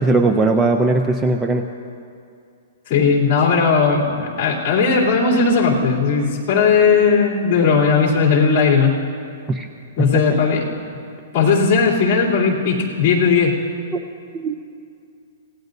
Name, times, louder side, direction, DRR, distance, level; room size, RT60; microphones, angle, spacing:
voice 1, 0.0-1.7 9.5-9.7 10.0-10.2 13.9-14.0 14.3-14.6, right 3 dB, 10° right, 5 dB, 0.5 m, -18 dB
voice 2, 2.9-8.9 10.0-10.6 11.3-13.5, left 5 dB, 30° left, -4 dB, 3.2 m, -17 dB
26.0 x 18.0 x 2.7 m, 2.4 s
hypercardioid pair, 170°, 0 cm